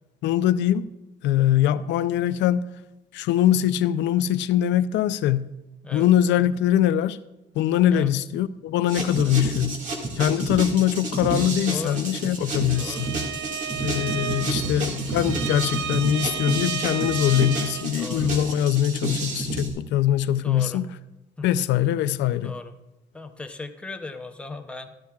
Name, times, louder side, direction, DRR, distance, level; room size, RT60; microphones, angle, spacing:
voice 1, 0.2-0.9 1.2-2.7 3.1-5.5 5.9-7.2 7.5-9.8 10.2-13.1 13.8-20.9 21.4-22.5, left 11 dB, 75° left, 0.5 m, -22 dB
sound 1, 8.9-19.7, right 2 dB, 40° right, 2.0 m, -30 dB
voice 2, 11.7-12.0 12.7-13.1 14.6-14.8 17.9-18.3 20.4-20.8 21.4-21.5 22.4-22.7 23.1-24.9, left 3 dB, 5° left, 0.6 m, -38 dB
Bowed string instrument, 12.7-18.0, right 8 dB, 75° right, 0.6 m, -33 dB
13.0 x 12.5 x 2.4 m
cardioid pair, 170°, 19 cm